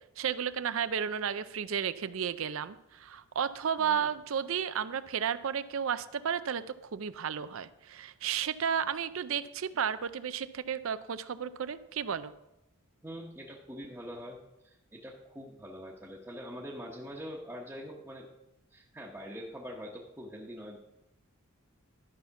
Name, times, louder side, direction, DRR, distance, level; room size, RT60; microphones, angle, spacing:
voice 1, 0.2-6.6 6.9-12.3, right 7 dB, 65° right, 13 dB, 0.5 m, -33 dB
voice 2, 3.8-4.1 13.0-18.3 18.7-20.8, equal, 10° right, -5 dB, 1.1 m, -44 dB
12.5 x 5.8 x 5.8 m, 0.87 s
head